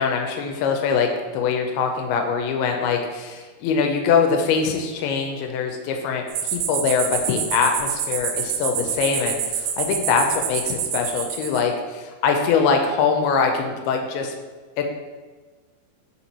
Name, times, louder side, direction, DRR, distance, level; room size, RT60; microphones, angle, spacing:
voice 1, 0.0-14.3 14.8-14.9, left 5 dB, 90° left, 3 dB, 2.6 m, -23 dB
sound 1, 6.3-11.6, right 8 dB, 90° right, 2.6 m, -27 dB
5.4 x 4.4 x 4.2 m, 1.4 s
omnidirectional pair, 4.5 m